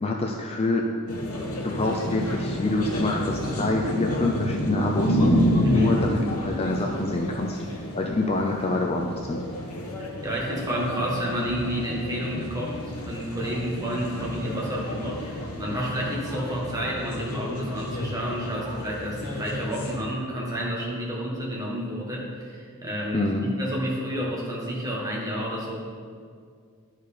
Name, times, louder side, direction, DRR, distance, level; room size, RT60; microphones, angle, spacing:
voice 1, 0.0-0.9 1.6-5.2 5.7-7.6 8.0-9.4 23.1-23.4, left 2 dB, 25° left, 1 dB, 0.5 m, -26 dB
sound 1, 1.1-20.0, equal, 80° left, 1.1 m, -29 dB
voice 2, 5.6-6.0 10.0-25.8, equal, 15° right, -4 dB, 1.5 m, -30 dB
11.0 x 4.6 x 5.1 m, 2.2 s
head